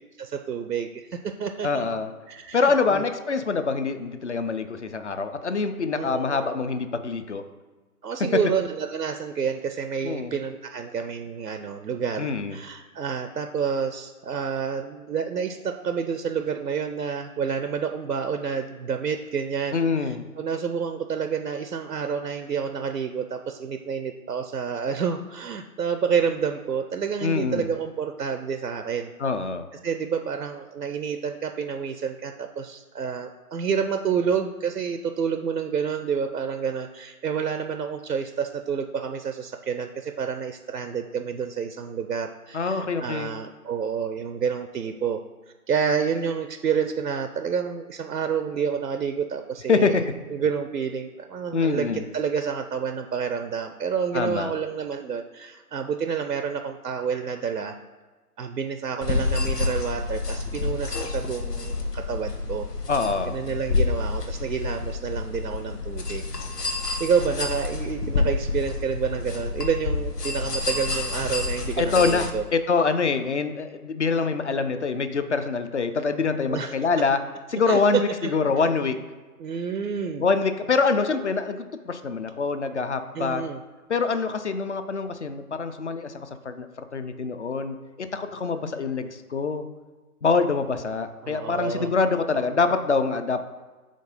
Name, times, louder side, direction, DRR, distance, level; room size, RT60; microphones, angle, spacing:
voice 1, 0.2-1.9 2.3-3.0 5.9-6.6 8.0-29.1 29.8-45.2 45.7-50.0 50.3-51.9 52.1-57.8 58.4-62.7 63.3-66.2 67.0-72.4 76.5-76.7 77.7-78.3 79.4-80.3 83.1-83.6 91.2-91.9, right 6 dB, 90° right, 7 dB, 0.6 m, -29 dB
voice 2, 1.6-2.1 2.5-7.4 10.0-10.3 12.2-12.6 19.7-20.2 27.2-27.7 29.2-29.7 42.5-43.3 49.7-50.0 51.5-52.1 54.1-54.5 62.9-63.4 71.8-72.3 72.5-77.2 77.5-79.0 80.2-83.4 83.9-89.7 90.2-93.4, left 4 dB, 50° left, 9 dB, 0.5 m, -25 dB
sound 1, 59.0-72.3, left 3 dB, 85° left, 1.1 m, -28 dB
5.1 x 3.7 x 5.2 m, 1.3 s
figure-of-eight pair, 140°, 46 cm